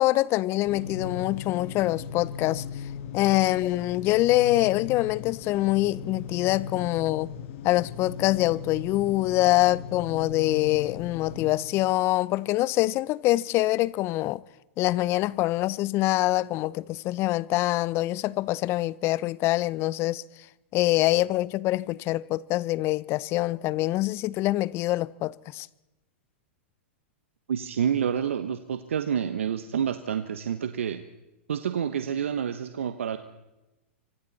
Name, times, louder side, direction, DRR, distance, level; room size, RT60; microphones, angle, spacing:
voice 1, 0.0-2.6 3.1-7.3 7.6-14.4 14.8-20.2 20.7-25.7, left 17 dB, 40° left, 0.7 m, -25 dB
sound 1, 0.6-11.6, left 7 dB, 55° left, 2.4 m, -38 dB
voice 2, 27.5-31.0 31.5-33.2, right 8 dB, 80° right, 1.2 m, -28 dB
26.0 x 25.0 x 4.2 m
hypercardioid pair, 115°, 7 cm